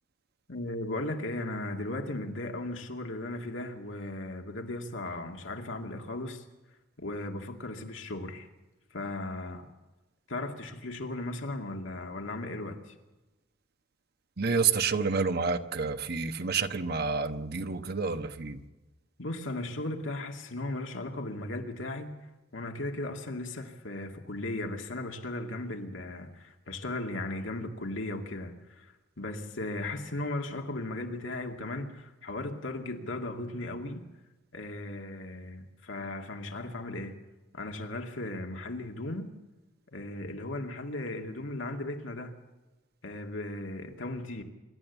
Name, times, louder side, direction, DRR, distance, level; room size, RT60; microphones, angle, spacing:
voice 1, 0.5-6.4 7.0-8.5 8.9-9.7 10.3-12.9 19.2-22.1 22.5-34.1 34.5-37.2 37.5-39.3 39.9-42.3 43.0-44.4, left 2 dB, 80° left, 2.4 m, -36 dB
voice 2, 14.4-18.6, right 5 dB, 55° right, 1.3 m, -29 dB
25.5 x 13.0 x 8.3 m
head